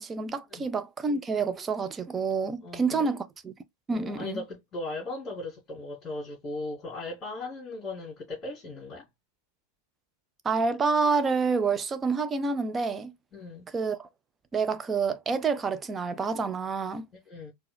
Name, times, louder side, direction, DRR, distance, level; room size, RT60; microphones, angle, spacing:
voice 1, 0.0-3.5 3.9-4.4 10.4-13.1 13.7-14.1 14.5-17.1, right 4 dB, 20° right, 0.5 m, -28 dB
voice 2, 2.6-3.1 3.9-9.0 13.3-13.6 17.3-17.5, left 2 dB, 25° left, 2.4 m, -38 dB
4.5 x 2.3 x 3.3 m
figure-of-eight pair, 90°, 0 cm